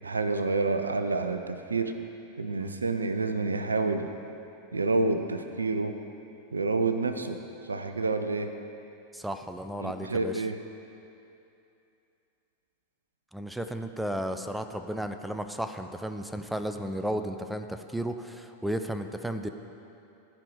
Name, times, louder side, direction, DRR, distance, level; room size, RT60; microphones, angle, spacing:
voice 1, 0.0-1.9 2.4-4.1 4.7-6.0 6.5-7.4 7.7-8.5 9.8-10.6, right 3 dB, 75° right, 8 dB, 0.5 m, -28 dB
voice 2, 9.1-10.4 13.3-19.5, right 1 dB, 5° right, 7 dB, 0.4 m, -34 dB
14.0 x 5.2 x 5.1 m, 2.8 s
figure-of-eight pair, 90°, 0 cm